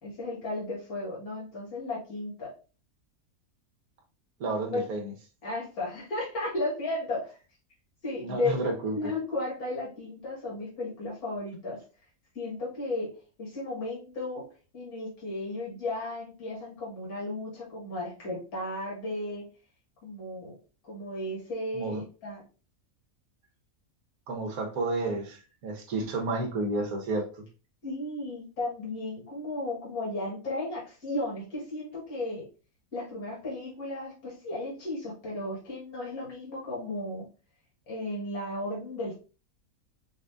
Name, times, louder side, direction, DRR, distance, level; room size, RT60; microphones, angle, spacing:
voice 1, 0.0-2.5 4.7-4.9 5.4-7.4 8.0-8.5 9.0-11.8 12.3-13.1 13.4-14.4 14.7-19.5 20.0-20.6 20.8-22.4 26.0-26.1 27.8-32.5 32.9-37.3 37.9-39.1, left 2 dB, 80° left, -4 dB, 2.4 m, -34 dB
voice 2, 4.4-5.1 8.2-9.1 21.7-22.0 24.3-27.4, right 2 dB, 75° right, 2 dB, 1.5 m, -31 dB
5.2 x 2.6 x 3.4 m, 0.35 s
omnidirectional pair, 1.6 m